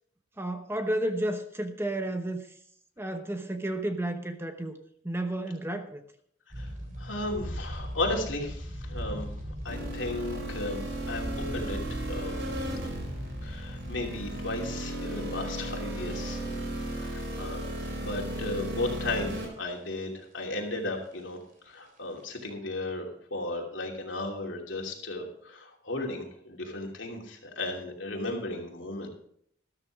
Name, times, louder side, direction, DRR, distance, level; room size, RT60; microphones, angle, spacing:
voice 1, 0.4-2.5 3.0-4.7 5.0-6.0, right 1 dB, 10° right, 6 dB, 0.9 m, -32 dB
sound 1, 6.5-18.0 18.3-18.4 19.0-19.8 20.1-20.2 20.6-21.9 22.2-22.5, equal, 45° right, 3.5 m, -40 dB
voice 2, 7.0-9.3 9.6-12.4 13.4-16.6 17.0-21.4 21.6-29.1, left 2 dB, 70° left, 1 dB, 2.9 m, -35 dB
sound 2, 9.7-19.5, right 1 dB, 70° right, 5.2 m, -35 dB
13.5 x 12.5 x 3.6 m, 0.65 s
head